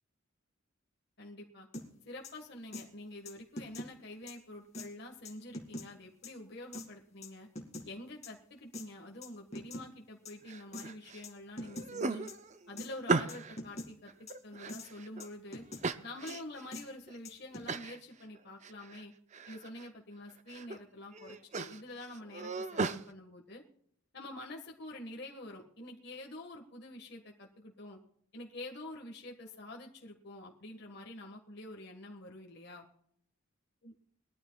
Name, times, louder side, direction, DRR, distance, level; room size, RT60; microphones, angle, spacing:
voice 1, 1.2-1.7 2.0-7.5 7.8-12.3 12.7-15.6 16.0-19.1 19.5-23.6 24.1-28.0 28.3-32.9 33.8-33.9, left 1 dB, 50° left, 1 dB, 1.6 m, -47 dB
sound 1, 1.7-1.9 2.2-2.3 2.7-2.8 3.2-3.9 4.3-4.4 4.7-4.9 5.2-5.9 6.2-6.3 6.7-6.9 7.2-7.9 8.2-8.3 8.7-8.8 9.2-9.9 10.2-10.3 10.7-10.9 11.2-11.3 11.6-11.9 12.3-12.4 12.8-12.9 13.3-13.9 14.3-14.4 14.7-14.9 15.2-15.8 16.3-16.4 16.7-16.8 17.2-17.7, left 1 dB, 30° left, 2.4 m, -43 dB
sound 2, 10.5-11.2 11.6-13.6 14.1-15.3 15.8-16.6 17.1-17.2 17.7-18.0 18.3-19.0 19.3-19.9 20.3-20.8 21.1-23.0, right 3 dB, 35° right, 0.6 m, -37 dB
21.5 x 13.5 x 2.3 m, 0.67 s
head